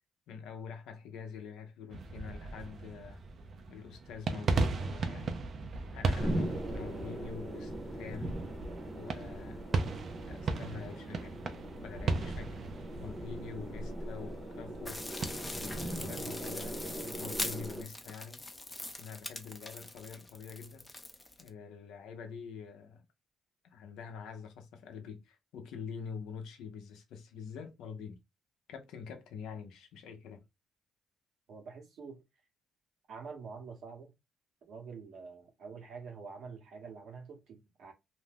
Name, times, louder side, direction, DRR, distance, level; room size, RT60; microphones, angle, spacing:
voice 1, 0.3-3.2 3.7-5.4 5.9-8.4 8.9-9.6 10.2-11.4 11.8-12.6 13.0-15.0 15.6-18.4 19.0-20.9 21.4-23.0 23.6-28.2 28.7-30.4, left 6 dB, 85° left, 0.7 m, -46 dB
sound 1, 1.9-15.2, right 3 dB, 50° right, 0.5 m, -37 dB
sound 2, 6.2-17.8, right 1 dB, 15° right, 0.8 m, -40 dB
sound 3, 14.9-21.5, left 2 dB, 15° left, 0.5 m, -42 dB
voice 2, 31.5-32.2 33.1-34.1 34.7-37.9, right 5 dB, 70° right, 1.0 m, -46 dB
2.6 x 2.2 x 3.4 m
cardioid pair, 90°, 0 cm